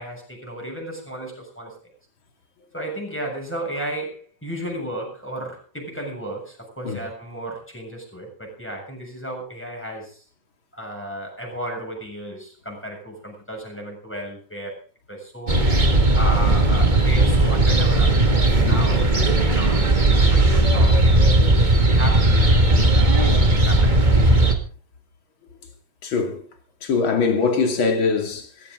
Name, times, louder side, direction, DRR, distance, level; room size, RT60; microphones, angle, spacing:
voice 1, 0.0-1.7 2.7-10.2 10.7-14.8 15.1-15.7 16.1-19.9 20.3-24.5, right 1 dB, 5° left, 7.0 m, -34 dB
sound 1, 15.5-24.5, right 2 dB, 40° right, 0.6 m, -17 dB
voice 2, 26.0-26.4 26.8-28.7, left 4 dB, 40° left, 3.1 m, -22 dB
18.0 x 15.5 x 3.9 m
omnidirectional pair, 3.9 m